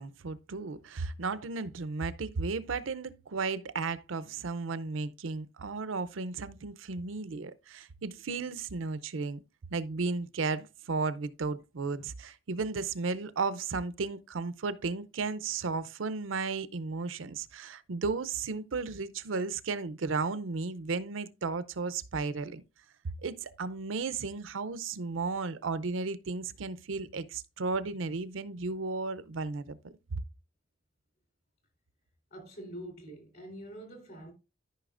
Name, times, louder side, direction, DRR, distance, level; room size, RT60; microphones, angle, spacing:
voice 1, 0.0-9.4 9.7-22.6 23.2-30.2, right 4 dB, 80° right, 0.6 m, -34 dB
voice 2, 32.3-34.3, right 1 dB, 55° left, 3.4 m, -45 dB
13.5 x 5.5 x 2.5 m
head